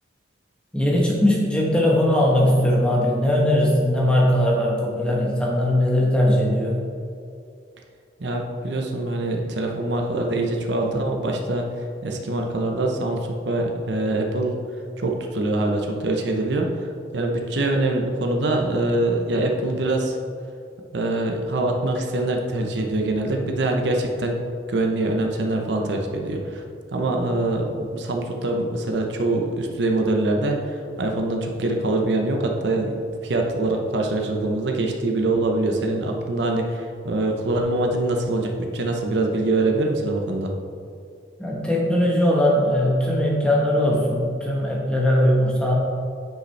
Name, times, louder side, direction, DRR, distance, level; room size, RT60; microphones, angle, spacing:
voice 1, 0.7-6.8 10.3-10.4 41.4-45.7, left 1 dB, 5° left, -3 dB, 1.1 m, -20 dB
voice 2, 8.2-11.7 12.0-14.5 15.0-16.7 17.1-20.2 20.9-24.4 24.7-26.6 26.9-40.5, right 2 dB, 65° right, 2 dB, 0.7 m, -24 dB
9.0 x 5.1 x 3.3 m, 2.4 s
head